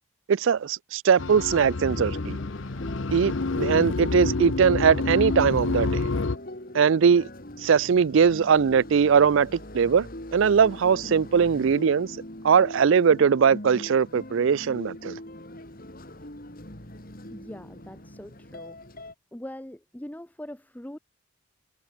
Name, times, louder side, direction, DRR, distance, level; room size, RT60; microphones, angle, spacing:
voice 1, 0.3-2.4 3.1-6.1 6.7-7.3 7.6-9.5 9.7-12.1 12.4-15.1, right 6 dB, 60° right, 0.4 m, -21 dB
sound 1, 1.2-6.4, left 3 dB, 60° left, 0.7 m, -28 dB
sound 2, 1.9-19.1, left 1 dB, 40° left, 3.9 m, -41 dB
voice 2, 17.3-18.8 19.3-21.0, left 1 dB, 5° left, 0.6 m, -42 dB
head